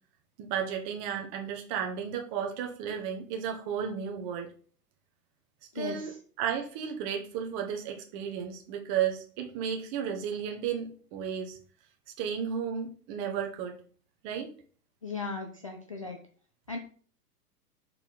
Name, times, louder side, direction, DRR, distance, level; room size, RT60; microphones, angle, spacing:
voice 1, 0.4-4.5 5.7-11.6 12.2-13.8 14.2-14.5, right 8 dB, 30° right, 3 dB, 1.3 m, -33 dB
voice 2, 5.7-6.1 15.0-16.2 16.7-16.8, left 4 dB, 25° left, 3 dB, 0.3 m, -36 dB
6.2 x 4.4 x 4.1 m, 0.44 s
figure-of-eight pair, 105°, 47 cm